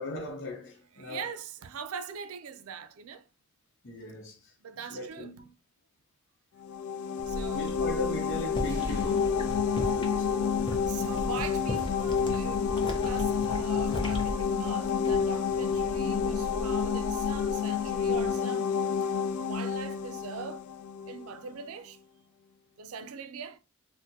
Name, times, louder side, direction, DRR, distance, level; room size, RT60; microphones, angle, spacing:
voice 1, 0.0-1.3 3.8-5.5 7.5-9.6 9.9-10.8, left 1 dB, 60° left, 0.8 m, -39 dB
voice 2, 1.0-3.3 4.6-5.3 7.3-7.7 10.8-12.7 13.0-18.8 19.4-20.6 21.1-22.0 22.8-23.6, right 6 dB, 90° right, 0.4 m, -41 dB
sound 1, 6.6-21.3, left 6 dB, 75° left, 0.3 m, -29 dB
sound 2, 7.2-18.3, equal, 55° right, 0.9 m, -43 dB
sound 3, 8.5-15.4 15.7-16.1, equal, 25° left, 0.6 m, -37 dB
3.6 x 2.1 x 2.7 m
head